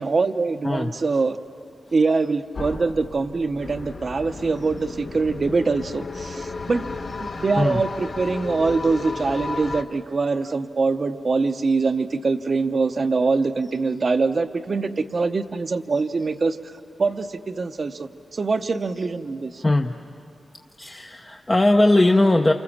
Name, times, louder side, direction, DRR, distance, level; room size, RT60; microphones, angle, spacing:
voice 1, 0.0-1.4 1.9-6.8 7.2-16.6 17.0-19.6, right 4 dB, 45° right, 10 dB, 0.8 m, -23 dB
sound 1, 2.5-7.3, left 3 dB, 65° left, 2.8 m, -42 dB
sound 2, 3.6-9.8, left 3 dB, 50° left, 1.1 m, -33 dB
voice 2, 7.3-7.8 19.6-20.0 20.8-22.5, left 2 dB, 20° left, 3 dB, 0.7 m, -19 dB
28.5 x 28.5 x 7.3 m, 2.6 s
wide cardioid pair, 145°, 0 cm